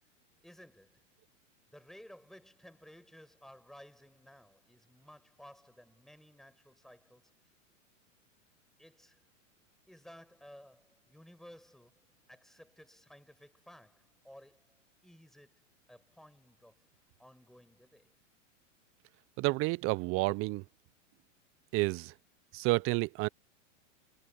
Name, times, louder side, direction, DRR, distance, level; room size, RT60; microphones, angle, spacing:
voice 1, 0.4-1.1 1.7-7.3 8.8-9.2 9.9-14.7 15.0-15.6 15.9-16.8 17.2-18.1, equal, ahead, 7.9 m, -56 dB
voice 2, 19.4-20.6 21.7-22.1 22.5-23.3, right 23 dB, 35° right, 0.6 m, -30 dB
hypercardioid pair, 115°, 39 cm